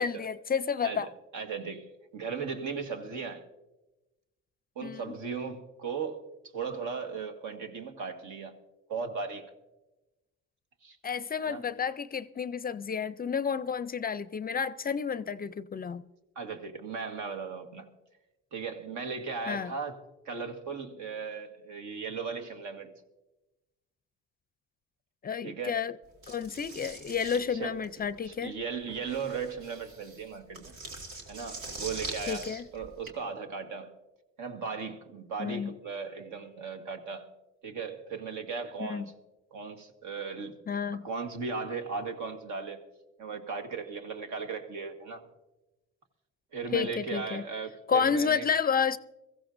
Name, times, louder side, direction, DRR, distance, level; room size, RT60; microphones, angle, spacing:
voice 1, 0.0-1.1 4.8-5.1 11.0-16.0 19.5-19.7 25.2-25.9 26.3-28.5 32.3-32.7 35.4-35.7 38.8-39.1 40.7-41.1 46.7-47.4 47.9-49.0, left 6 dB, 30° left, 0.4 m, -30 dB
voice 2, 0.8-3.4 4.7-6.2 6.5-8.5 8.9-9.5 10.8-11.0 11.4-11.6 16.3-17.9 18.5-22.9 25.4-25.8 27.2-27.8 28.2-30.7 31.3-33.9 34.4-37.3 37.6-39.1 39.5-40.5 40.9-42.8 43.2-45.3 46.5-48.5, right 5 dB, 75° right, 1.6 m, -37 dB
sound 1, 26.2-33.1, right 2 dB, 90° right, 2.5 m, -43 dB
22.5 x 15.0 x 2.6 m
cardioid pair, 90°, 30 cm